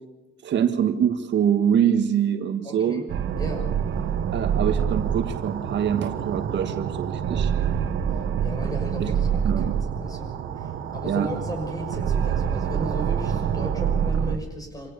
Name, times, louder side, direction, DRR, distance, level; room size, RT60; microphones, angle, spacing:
voice 1, 0.4-3.0 4.3-7.5 9.0-9.1 9.4-9.7 11.0-11.3, right 9 dB, 65° right, 8 dB, 1.7 m, -24 dB
voice 2, 2.6-3.1 3.4-3.8 8.1-14.9, equal, 20° left, 5 dB, 6.4 m, -35 dB
sound 1, 3.1-14.4, right 8 dB, 85° right, 1.7 m, -26 dB
26.0 x 17.0 x 6.9 m, 0.95 s
cardioid pair, 120°, 20 cm